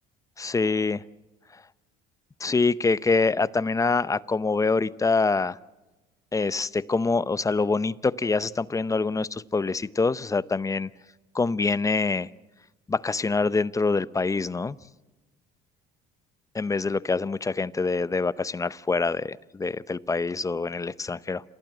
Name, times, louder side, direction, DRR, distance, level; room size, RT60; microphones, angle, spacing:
voice 1, 0.4-1.0 2.4-5.6 6.3-10.9 11.3-12.3 12.9-14.8 16.5-21.4, left 4 dB, 20° left, 17 dB, 0.7 m, -25 dB
28.0 x 15.0 x 7.8 m, 1.1 s
supercardioid pair, 85°, 18 cm